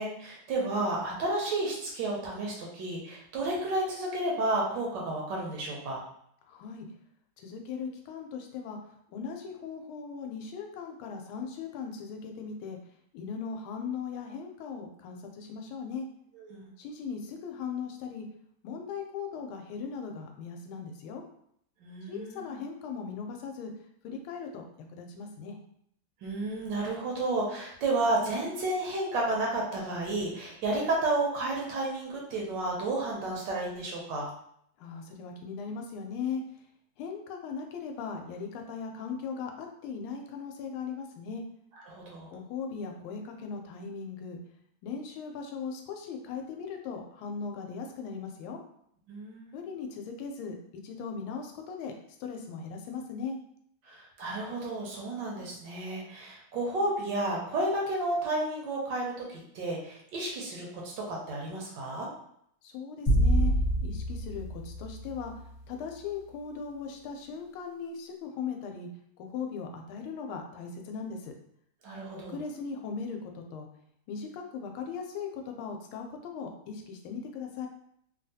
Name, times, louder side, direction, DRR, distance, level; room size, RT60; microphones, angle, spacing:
voice 1, 0.0-6.0 16.3-16.7 21.8-22.6 26.2-34.3 41.9-42.3 49.1-49.6 53.8-62.1 71.8-72.4, right 2 dB, 70° right, -2 dB, 1.3 m, -32 dB
voice 2, 6.5-6.9 7.4-8.8 9.1-12.8 13.1-16.1 16.8-18.3 18.6-21.2 22.1-23.7 24.0-24.7 24.9-25.6 34.8-36.4 37.0-41.4 42.3-44.4 44.8-48.6 49.5-50.5 50.8-51.9 52.2-53.4 62.6-63.5 63.8-65.3 65.7-68.9 69.2-71.3 72.3-73.7 74.1-77.7, left 6 dB, 85° left, 3 dB, 1.4 m, -38 dB
sound 1, 63.1-65.5, right 1 dB, 30° left, 0.6 m, -27 dB
3.5 x 2.4 x 2.6 m, 0.70 s
omnidirectional pair, 2.3 m